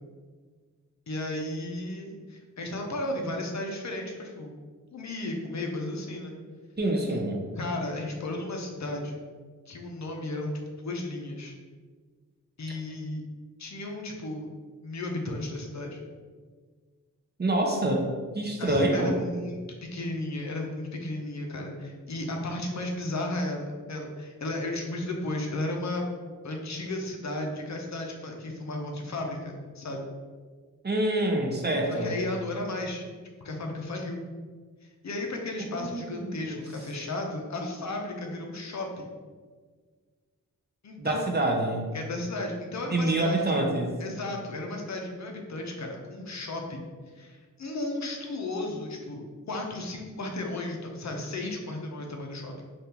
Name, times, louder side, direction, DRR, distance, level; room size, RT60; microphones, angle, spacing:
voice 1, 1.1-4.6 4.9-6.3 7.6-9.2 9.7-10.5 10.8-11.6 12.6-13.2 13.6-14.5 14.8-16.0 18.6-26.1 26.4-30.0 31.9-33.0 33.4-34.2 35.0-39.1 40.8-41.2 41.9-43.6 44.0-46.8 47.2-52.5, left 2 dB, 55° left, 1 dB, 0.6 m, -34 dB
voice 2, 6.8-7.4 17.4-18.1 18.3-19.2 30.8-32.2 35.7-36.6 41.0-41.9 42.9-44.0, right 1 dB, 30° right, 1 dB, 0.5 m, -26 dB
3.6 x 2.4 x 2.8 m, 1.5 s
cardioid pair, 60°, 33 cm